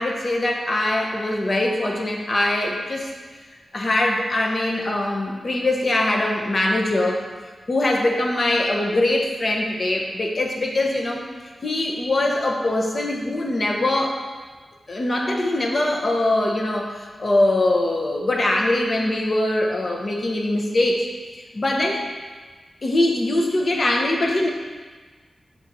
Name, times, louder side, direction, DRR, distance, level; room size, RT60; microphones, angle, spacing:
voice 1, 0.0-3.1 3.7-7.2 7.7-11.2 11.6-14.2 14.9-21.1 21.4-22.0 22.8-24.5, left 1 dB, 45° left, 1 dB, 0.8 m, -22 dB
6.1 x 4.0 x 4.0 m, 1.4 s
wide cardioid pair, 85°, 0 cm